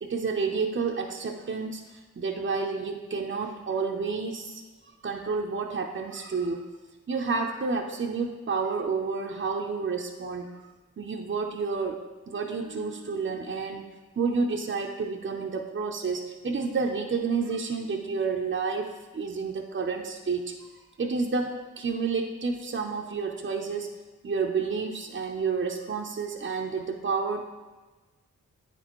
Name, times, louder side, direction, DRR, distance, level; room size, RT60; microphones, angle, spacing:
voice 1, 0.0-4.6 5.0-6.6 7.1-13.9 14.2-20.7 21.0-23.9 24.2-27.5, right 4 dB, 35° right, 1 dB, 0.6 m, -30 dB
9.0 x 4.2 x 3.0 m, 1.2 s
cardioid pair, 40°, 34 cm